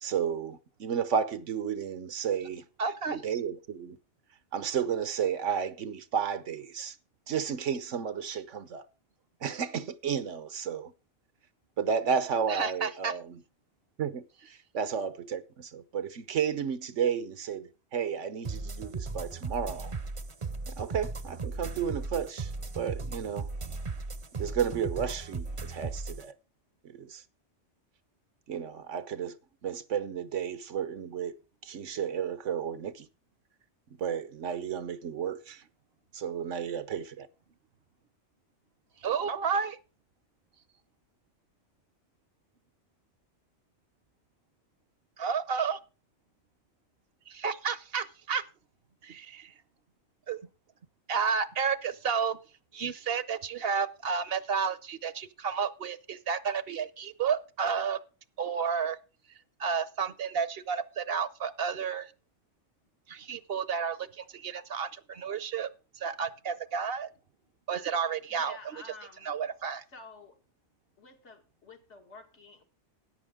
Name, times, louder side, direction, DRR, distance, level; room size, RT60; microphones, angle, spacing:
voice 1, 0.0-2.6 3.1-4.0 4.5-7.0 7.3-8.9 9.4-10.9 11.8-13.4 14.0-20.0 20.7-23.5 24.4-26.3 26.8-27.2 28.5-29.3 29.6-31.4 31.6-33.1 34.0-35.6 36.1-37.3, right 7 dB, 85° right, 1.3 m, -32 dB
voice 2, 2.8-3.2 12.5-13.1 39.0-39.8 45.2-45.8 47.3-48.4 49.0-49.5 50.3-50.4 51.1-52.4 52.7-58.0 58.4-59.0 59.6-62.1 63.1-65.7 66.0-67.1 67.7-68.6 69.2-69.8, right 6 dB, 60° right, 0.9 m, -31 dB
sound 1, 18.4-26.2, right 3 dB, 35° right, 0.7 m, -37 dB
voice 3, 68.3-69.3 69.9-70.4 71.0-72.6, left 3 dB, 70° left, 2.2 m, -50 dB
13.5 x 9.9 x 3.6 m
omnidirectional pair, 1.2 m